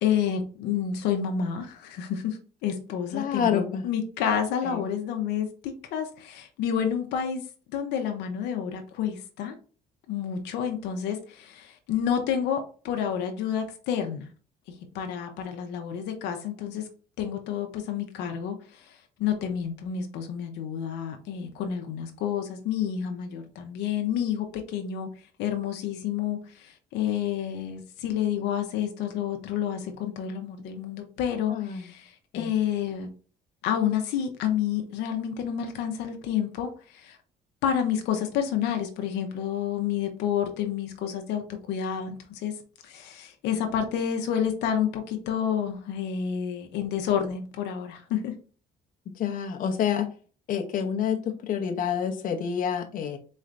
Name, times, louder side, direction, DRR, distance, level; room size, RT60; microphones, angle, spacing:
voice 1, 0.0-7.4 7.7-9.5 10.1-14.3 14.9-16.8 17.2-25.1 25.4-33.1 33.6-37.2 37.6-42.5 42.8-48.3, left 8 dB, 85° left, 0.7 m, -29 dB
voice 2, 3.1-3.8 4.6-4.9 31.5-31.9 32.3-32.5 49.2-50.1 50.5-53.2, left 8 dB, 55° left, 0.7 m, -28 dB
4.2 x 3.2 x 2.5 m
cardioid pair, 110°, 17 cm